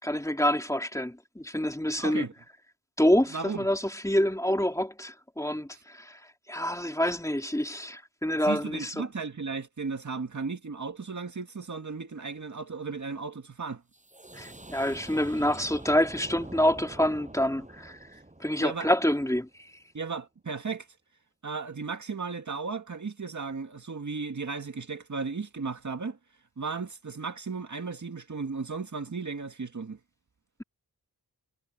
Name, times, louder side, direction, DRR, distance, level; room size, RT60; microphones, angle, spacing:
voice 1, 0.0-2.3 3.0-6.2 6.5-9.0 14.3-18.0 18.4-19.5, equal, 10° left, 2.8 m, -27 dB
voice 2, 2.0-2.3 3.3-3.7 5.7-5.8 8.4-13.8 18.6-18.9 19.9-20.9 21.4-26.2 26.6-30.0, right 4 dB, 50° right, 2.1 m, -35 dB
sound 1, 13.9-19.5, right 2 dB, 20° right, 7.3 m, -46 dB
wide cardioid pair, 80°, 37 cm